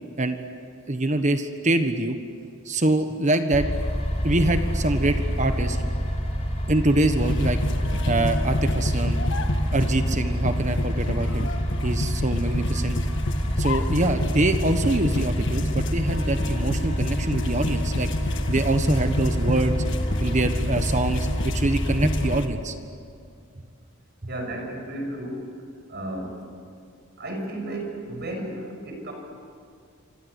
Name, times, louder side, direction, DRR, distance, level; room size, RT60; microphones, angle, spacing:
voice 1, 0.9-2.1 2.6-3.7 4.2-5.8 6.7-7.6 8.1-9.2 9.7-11.5 11.8-13.0 13.6-18.1 18.5-19.8 20.2-22.7, right 2 dB, 35° right, 8 dB, 1.3 m, -24 dB
sound 1, 3.5-22.4, equal, 30° left, 4.0 m, -27 dB
sound 2, 7.2-22.5, left 1 dB, 60° left, 1.6 m, -31 dB
voice 2, 24.3-25.4 25.9-26.4 27.2-29.1, right 1 dB, 50° right, 3 dB, 6.3 m, -33 dB
27.5 x 25.5 x 8.3 m, 2.3 s
head